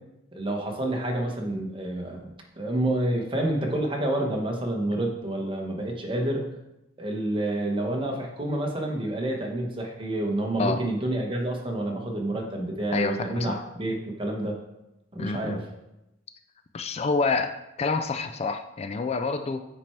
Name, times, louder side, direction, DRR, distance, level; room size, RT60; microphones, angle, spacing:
voice 1, 0.3-2.3 2.6-6.4 7.0-14.6 15.1-15.6, right 1 dB, 30° right, 1 dB, 1.3 m, -28 dB
voice 2, 12.9-13.6 15.2-15.6 16.7-19.7, left 4 dB, 35° left, 9 dB, 0.3 m, -28 dB
9.2 x 4.5 x 4.6 m, 0.91 s
head